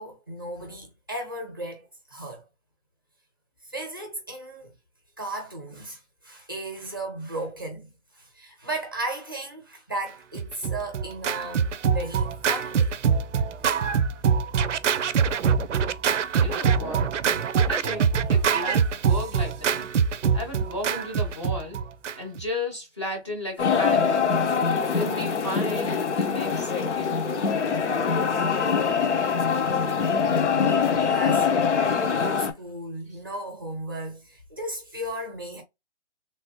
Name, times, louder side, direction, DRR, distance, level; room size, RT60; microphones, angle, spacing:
voice 1, 0.0-2.4 3.6-4.7 5.2-12.9 13.6-13.8 15.2-15.4 21.3-21.4 23.7-23.8 30.5-31.5 32.1-35.6, right 1 dB, 20° right, 0.6 m, -35 dB
Scratching (performance technique), 10.3-22.4, right 6 dB, 80° right, 0.5 m, -24 dB
voice 2, 16.4-17.0 17.7-19.9 20.3-21.8 22.1-24.3 24.9-27.2, left 1 dB, 25° left, 0.8 m, -34 dB
sound 1, 23.6-32.5, left 6 dB, 70° left, 0.9 m, -23 dB
3.4 x 2.7 x 2.8 m
hypercardioid pair, 175°, 36 cm